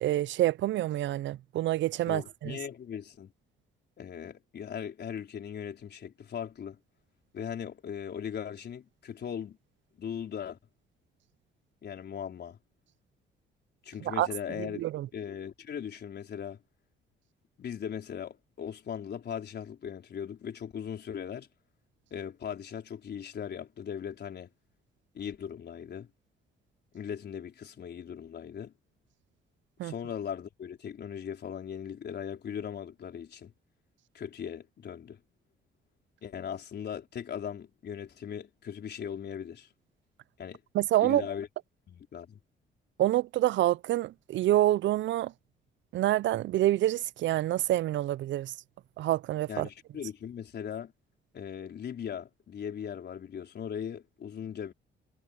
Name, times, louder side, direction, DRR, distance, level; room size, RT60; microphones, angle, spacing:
voice 1, 0.0-2.6 14.0-14.3 14.6-15.1 29.8-29.9 40.7-41.3 43.0-45.3 45.9-48.5 49.0-49.7, right 14 dB, 70° right, 0.5 m, -27 dB
voice 2, 2.1-3.3 4.0-6.8 7.3-9.6 10.0-10.6 11.8-12.6 13.8-14.9 15.1-16.6 17.6-21.5 22.1-24.5 25.1-26.1 26.9-28.7 29.8-33.5 34.1-35.2 36.2-39.7 40.4-40.6 41.0-41.5 41.9-42.4 49.5-50.9 51.3-54.7, left 8 dB, 55° left, 4.4 m, -39 dB
cardioid pair, 90°, 20 cm